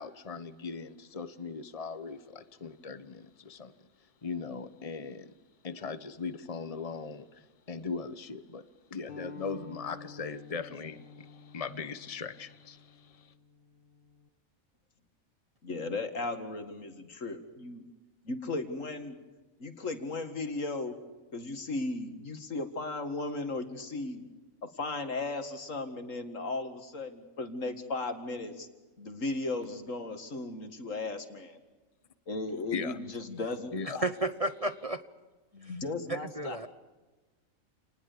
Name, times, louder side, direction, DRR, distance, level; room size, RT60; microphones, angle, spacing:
voice 1, 0.0-3.7 4.2-5.3 5.6-8.6 8.9-13.3 32.7-33.0 33.7-34.0, left 5 dB, 30° left, 1.2 m, -39 dB
sound 1, 9.1-14.3, left 5 dB, 45° left, 1.5 m, -50 dB
voice 2, 15.6-17.8 18.3-19.2 19.6-20.9 21.3-24.3 24.7-28.7 29.0-31.6 32.3-34.0 35.5-36.6, left 3 dB, 70° left, 2.5 m, -36 dB
voice 3, 34.0-35.0 35.6-35.7 36.1-36.7, right 2 dB, 30° right, 1.0 m, -32 dB
29.0 x 20.0 x 6.9 m
omnidirectional pair, 1.4 m